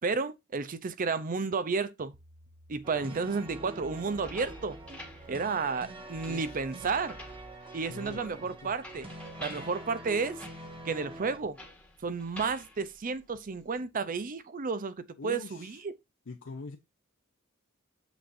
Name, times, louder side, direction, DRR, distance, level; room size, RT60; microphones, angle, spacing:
voice 1, 0.0-2.2 2.7-4.8 5.3-7.2 7.7-9.1 9.4-10.4 10.8-11.6 12.0-14.9 15.2-15.9, right 4 dB, 40° right, 0.5 m, -32 dB
sound 1, 2.1-7.6, right 2 dB, 80° right, 0.9 m, -54 dB
sound 2, 2.8-11.4, right 1 dB, 25° right, 1.2 m, -46 dB
voice 2, 2.9-3.4 6.2-6.4 7.9-8.7 15.2-15.8 16.3-16.8, left 4 dB, 65° left, 0.6 m, -44 dB
sound 3, 4.1-13.7, left 1 dB, 5° left, 1.4 m, -50 dB
7.1 x 6.0 x 2.6 m
head